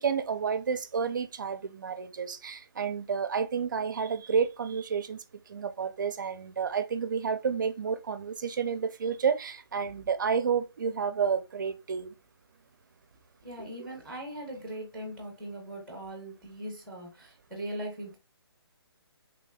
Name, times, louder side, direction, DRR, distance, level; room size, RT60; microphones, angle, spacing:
voice 1, 0.0-5.2 5.5-12.1 13.6-13.7, right 6 dB, 50° right, 0.5 m, -30 dB
voice 2, 13.4-18.2, right 1 dB, ahead, 0.9 m, -40 dB
4.0 x 3.3 x 2.2 m
hypercardioid pair, 170°, 14 cm